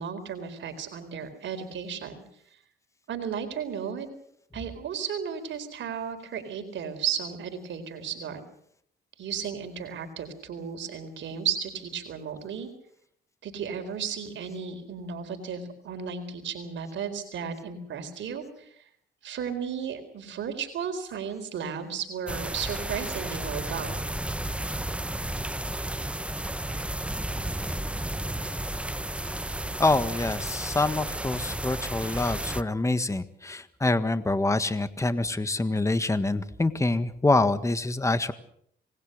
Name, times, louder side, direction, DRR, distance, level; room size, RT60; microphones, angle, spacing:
voice 1, 0.0-2.1 3.1-4.1 4.5-8.4 9.2-12.7 13.4-18.8 19.2-23.9, right 7 dB, 70° right, 7 dB, 4.1 m, -34 dB
sound 1, 22.3-32.6, right 1 dB, 5° right, 0.9 m, -32 dB
voice 2, 29.8-38.3, left 2 dB, 15° left, 11 dB, 1.6 m, -26 dB
26.5 x 20.5 x 6.7 m, 0.67 s
cardioid pair, 90°, 20 cm